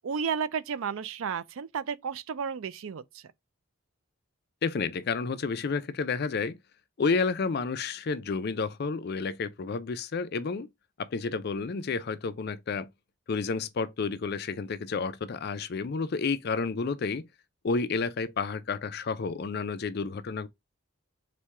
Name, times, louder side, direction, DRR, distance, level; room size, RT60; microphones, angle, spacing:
voice 1, 0.0-3.2, right 6 dB, 70° right, 0.4 m, -32 dB
voice 2, 4.6-6.6 7.0-10.7 11.0-12.9 13.3-17.3 17.6-20.5, left 4 dB, 50° left, 0.4 m, -30 dB
4.2 x 2.2 x 4.6 m
head